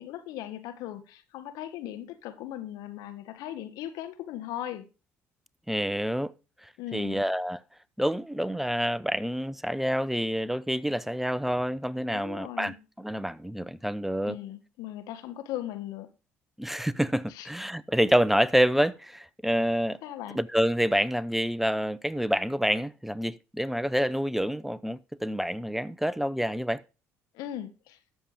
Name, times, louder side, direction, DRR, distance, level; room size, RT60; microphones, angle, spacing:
voice 1, 0.0-4.9 6.8-7.2 12.1-12.8 14.2-16.1 17.3-17.5 20.0-20.4 27.3-28.0, left 12 dB, 70° left, 1.7 m, -38 dB
voice 2, 5.7-6.3 6.6-7.6 8.0-14.4 16.6-20.0 20.3-26.8, equal, 5° right, 0.7 m, -27 dB
13.0 x 7.1 x 5.1 m
hypercardioid pair, 60°, 7 cm